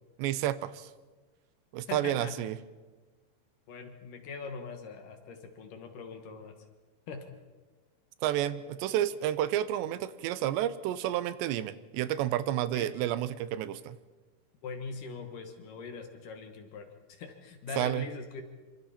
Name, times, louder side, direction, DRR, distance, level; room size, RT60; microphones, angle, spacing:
voice 1, 0.2-0.9 1.7-2.6 8.2-14.0 17.8-18.1, right 12 dB, 90° right, 15 dB, 3.0 m, -30 dB
voice 2, 1.9-2.3 3.7-6.5 7.1-7.3 12.7-12.9 14.6-18.4, left 4 dB, 60° left, 6 dB, 2.6 m, -42 dB
26.5 x 25.0 x 4.3 m, 1.3 s
omnidirectional pair, 4.9 m